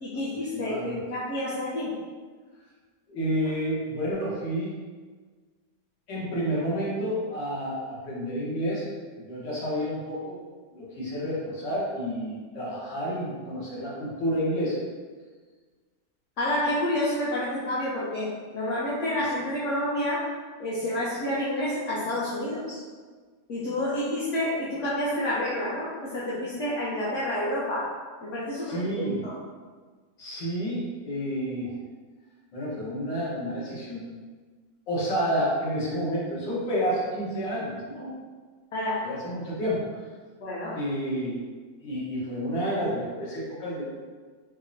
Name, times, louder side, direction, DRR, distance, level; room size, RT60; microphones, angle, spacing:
voice 1, 0.0-2.0 16.4-20.3 20.6-22.8 23.5-27.9 28.2-29.4 38.7-39.1 40.4-40.8, left 1 dB, 65° left, -8 dB, 0.7 m, -29 dB
voice 2, 0.5-1.0 3.1-4.7 6.1-8.9 9.3-10.4 10.7-14.8 28.7-29.2 30.2-31.7 32.5-34.1 34.9-38.1 39.0-39.9 40.8-41.4 41.8-43.8, equal, 85° left, -6 dB, 1.7 m, -30 dB
5.3 x 2.1 x 2.6 m, 1.5 s
omnidirectional pair, 1.9 m